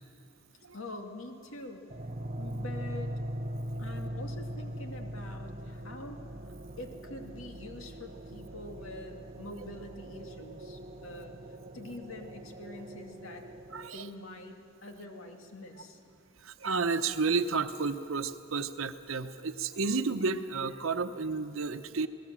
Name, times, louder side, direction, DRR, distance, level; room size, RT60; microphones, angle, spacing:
voice 1, 0.7-1.8 2.4-3.1 3.8-6.2 6.8-11.4 11.7-13.5 13.8-16.0, left 1 dB, 85° left, 3 dB, 2.3 m, -45 dB
sound 1, 1.9-13.9, equal, 35° right, 0.7 m, -41 dB
voice 2, 13.7-14.0 16.4-22.1, right 4 dB, 80° right, 10 dB, 1.0 m, -31 dB
28.0 x 18.5 x 7.6 m, 2.6 s
head